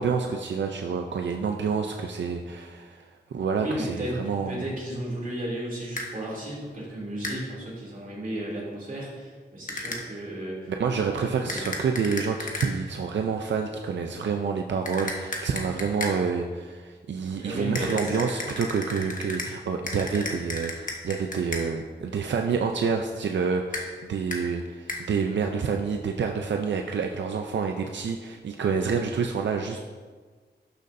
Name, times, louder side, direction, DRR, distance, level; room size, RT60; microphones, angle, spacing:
voice 1, 0.0-4.7 10.8-29.8, right 5 dB, 90° right, 3 dB, 0.5 m, -28 dB
voice 2, 3.5-10.7 11.1-11.6 17.4-18.2, right 1 dB, 50° right, -5 dB, 2.6 m, -34 dB
sound 1, 6.0-6.1 7.2-7.4 9.7-10.0 11.5-12.7 14.9-16.2 17.7-19.5 19.9-21.6 23.7-23.9 24.3-24.4 24.9-25.0, left 2 dB, 45° left, 1.2 m, -33 dB
12.0 x 6.6 x 2.6 m, 1.5 s
wide cardioid pair, 100°, 18 cm